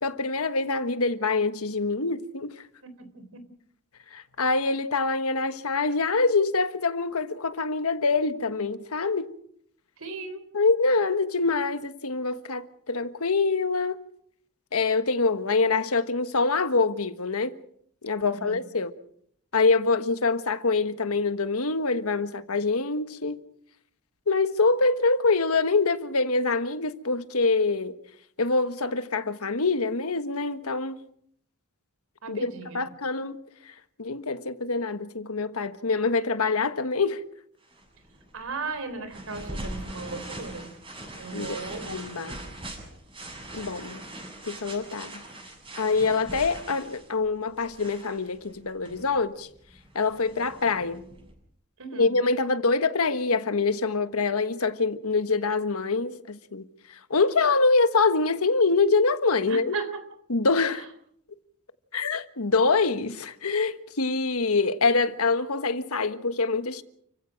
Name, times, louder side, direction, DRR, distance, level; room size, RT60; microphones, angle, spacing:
voice 1, 0.0-2.5 4.1-9.3 10.5-14.0 14.7-17.5 18.0-18.9 19.5-23.4 24.3-28.0 28.4-31.0 32.3-33.4 34.0-37.2 41.3-42.4 43.5-44.0 44.4-45.2 45.8-49.5 49.9-51.0 51.9-56.7 57.1-59.8 60.3-60.8 61.9-66.8, left 3 dB, 85° left, 1.4 m, -25 dB
voice 2, 2.8-3.4 10.0-10.4 18.3-18.6 32.2-32.9 38.3-40.7 41.2-41.9 42.2-42.4 51.8-52.1 59.5-60.0, right 4 dB, 70° right, 3.8 m, -36 dB
sound 1, 37.6-51.3, right 1 dB, 25° right, 7.4 m, -42 dB
30.0 x 16.0 x 6.4 m
head